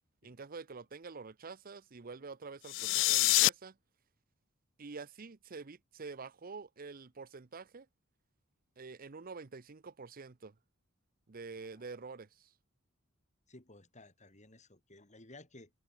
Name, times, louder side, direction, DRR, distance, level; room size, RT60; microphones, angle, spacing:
voice 1, 0.2-3.8 4.8-7.9 8.8-10.6 11.3-12.5, right 4 dB, 45° right, 0.7 m, -47 dB
sound 1, 2.6-3.5, left 19 dB, 65° left, 0.3 m, -26 dB
voice 2, 11.5-11.9 13.5-15.7, left 2 dB, 35° left, 7.0 m, -56 dB
head